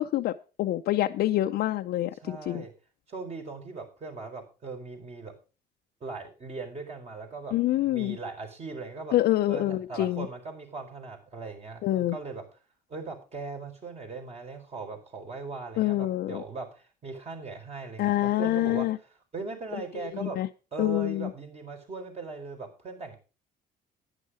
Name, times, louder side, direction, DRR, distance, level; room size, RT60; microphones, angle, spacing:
voice 1, 0.0-2.7 7.5-8.2 9.1-10.3 11.8-12.2 15.8-16.4 18.0-19.0 19.9-20.5 20.8-21.3, left 14 dB, 70° left, 5 dB, 0.6 m, -26 dB
voice 2, 2.2-2.7 3.1-5.3 6.0-9.1 9.5-12.4 12.9-18.9 19.3-20.4 20.7-23.2, right 4 dB, 40° right, 3 dB, 4.6 m, -39 dB
11.0 x 9.9 x 4.9 m, 0.33 s
cardioid pair, 110°, 17 cm